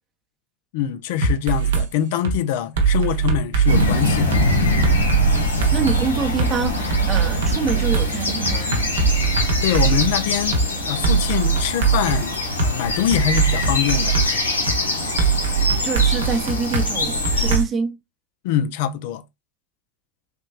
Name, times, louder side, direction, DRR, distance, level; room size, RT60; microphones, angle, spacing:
voice 1, 0.7-4.4 9.6-14.2 18.4-19.2, left 10 dB, 60° left, 0.4 m, -24 dB
sound 1, 1.2-1.9 2.2-2.4 2.8-4.4 4.8-6.0 6.4-6.5 6.9-10.1 10.5-10.7 11.0-12.7 13.1-14.3 14.7-14.8 15.2-17.6, right 6 dB, 70° right, 0.7 m, -21 dB
sound 2, 3.7-17.6, left 1 dB, 85° left, 0.8 m, -23 dB
voice 2, 5.7-8.8 15.8-18.0, right 5 dB, 30° right, 0.7 m, -26 dB
3.3 x 3.0 x 2.4 m
figure-of-eight pair, 80°, 0 cm